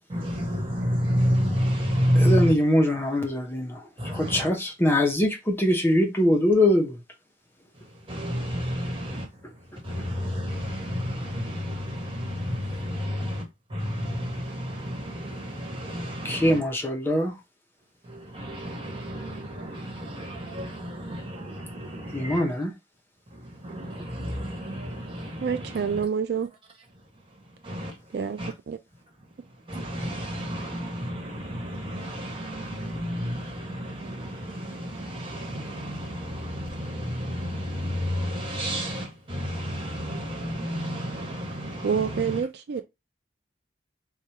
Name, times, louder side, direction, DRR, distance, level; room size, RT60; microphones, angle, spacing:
voice 1, 0.1-2.5 4.0-4.5 7.8-9.3 9.5-16.6 18.0-22.4 23.3-26.0 27.6-28.5 29.6-42.4, equal, 30° right, 1.3 m, -30 dB
voice 2, 2.1-7.0 9.4-9.5 16.2-17.4 22.1-22.7, left 1 dB, 15° left, 0.7 m, -23 dB
voice 3, 25.4-26.5 28.1-28.4 28.7-28.8 41.8-42.8, right 6 dB, 65° right, 0.3 m, -27 dB
4.7 x 2.3 x 2.8 m
head